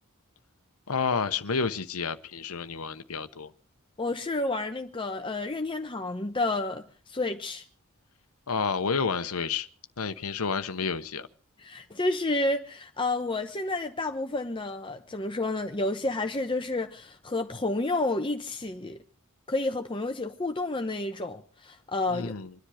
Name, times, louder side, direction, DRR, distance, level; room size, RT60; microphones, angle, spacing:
voice 1, 0.9-3.5 8.5-9.7 10.0-11.3 22.1-22.5, left 5 dB, 85° left, 0.9 m, -30 dB
voice 2, 4.0-6.8 7.1-7.6 11.6-19.0 19.5-22.3, left 2 dB, 25° left, 0.9 m, -30 dB
26.0 x 10.5 x 4.9 m
head